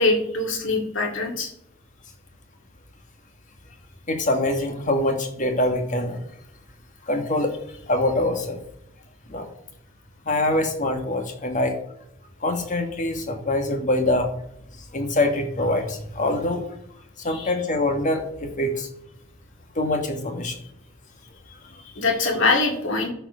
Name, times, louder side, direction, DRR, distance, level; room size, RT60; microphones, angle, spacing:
voice 1, 0.0-1.5 17.3-17.5 21.9-23.1, left 3 dB, 65° left, 2 dB, 2.2 m, -23 dB
voice 2, 4.1-6.2 7.1-7.6 7.9-8.6 9.3-9.5 10.3-11.7 12.4-14.3 14.9-16.6 17.2-18.9 19.7-20.6, left 1 dB, 40° left, 5 dB, 1.6 m, -24 dB
13.0 x 4.6 x 5.7 m, 0.76 s
head